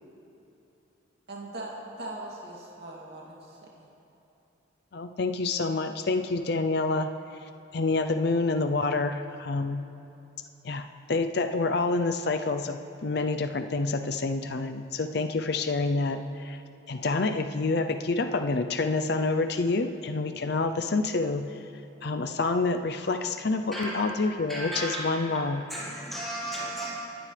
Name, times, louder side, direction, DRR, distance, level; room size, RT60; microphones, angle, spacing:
voice 1, 1.3-3.9, right 2 dB, 55° right, -4 dB, 2.7 m, -40 dB
voice 2, 4.9-7.1 7.7-9.9 10.6-16.6 16.9-21.6 22.0-25.7, left 3 dB, 55° left, 7 dB, 0.5 m, -28 dB
voice 3, 23.7-24.0 24.5-25.2 25.7-26.9, right 1 dB, ahead, -10 dB, 4.3 m, -34 dB
29.0 x 10.5 x 3.4 m, 2.9 s
head